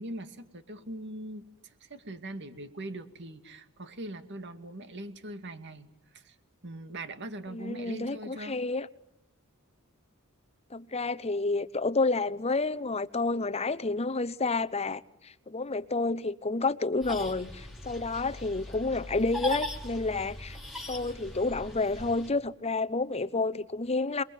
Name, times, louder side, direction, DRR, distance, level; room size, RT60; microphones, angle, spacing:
voice 1, 0.0-6.4 6.6-8.6, right 1 dB, 55° right, 2.3 m, -41 dB
voice 2, 7.5-8.9 10.7-20.6 20.9-24.2, left 3 dB, 30° left, 0.9 m, -30 dB
sound 1, 17.0-22.3, left 1 dB, ahead, 4.9 m, -39 dB
28.5 x 21.5 x 9.3 m
head